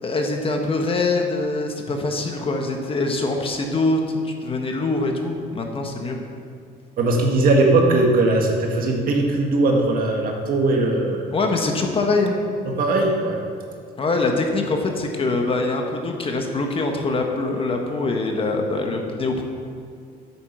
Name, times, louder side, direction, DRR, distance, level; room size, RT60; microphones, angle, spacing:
voice 1, 0.0-6.2 11.3-12.4 14.0-19.4, left 3 dB, 30° left, 2 dB, 1.4 m, -23 dB
voice 2, 7.0-11.3 12.7-13.4, right 2 dB, 60° right, 1 dB, 1.8 m, -19 dB
8.6 x 7.5 x 6.8 m, 2.3 s
cardioid pair, 110°, 17 cm